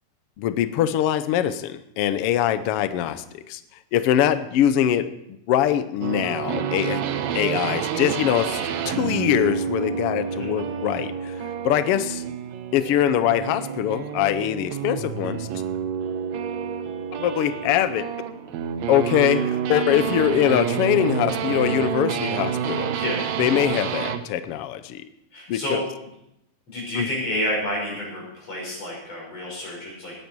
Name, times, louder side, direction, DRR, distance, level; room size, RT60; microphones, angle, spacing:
voice 1, 0.4-3.6 3.9-5.1 5.5-7.0 7.3-11.3 11.6-12.2 12.7-15.5 17.2-18.1 18.9-19.4 19.7-22.9 23.4-25.0 25.5-25.8 27.0-27.1, left 11 dB, 85° left, 12 dB, 1.3 m, -23 dB
sound 1, 6.0-24.3, right 8 dB, 70° right, 2.0 m, -28 dB
voice 2, 22.9-23.3 25.3-25.8 26.7-30.1, left 1 dB, 50° left, -3 dB, 7.1 m, -29 dB
18.5 x 10.5 x 4.7 m, 0.80 s
omnidirectional pair, 3.6 m